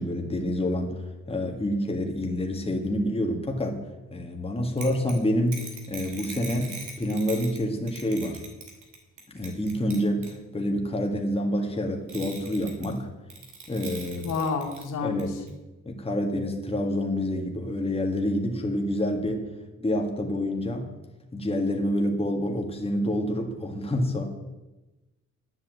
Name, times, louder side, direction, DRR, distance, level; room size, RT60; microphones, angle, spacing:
voice 1, 0.0-3.8 4.1-5.6 5.9-8.4 9.3-13.1 13.7-14.3 15.0-15.4 15.9-19.5 19.8-20.9 21.3-24.2, left 1 dB, 20° left, 1 dB, 1.9 m, -27 dB
sound 1, 4.8-7.6 7.9-10.3 12.1-13.0 13.3-14.8 15.2-15.3 15.5-15.6, right 5 dB, 75° right, 2.9 m, -41 dB
voice 2, 14.2-15.3, left 5 dB, 80° left, -1 dB, 2.5 m, -29 dB
9.9 x 8.1 x 7.7 m, 1.1 s
cardioid pair, 90°, 30 cm